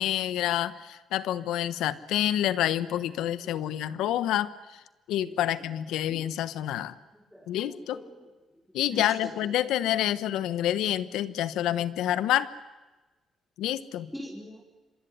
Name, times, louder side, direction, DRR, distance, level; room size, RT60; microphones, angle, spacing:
voice 1, 0.0-4.5 5.1-7.0 7.5-8.0 8.7-12.5 13.6-14.1, left 12 dB, 90° left, 14 dB, 1.2 m, -28 dB
voice 2, 3.2-3.8 5.3-5.4 5.7-5.8 6.1-6.3 7.3-8.3 8.9-9.3 14.1-14.6, equal, ahead, 0 dB, 4.7 m, -43 dB
26.0 x 23.5 x 9.6 m, 1.2 s
cardioid pair, 90°, 0 cm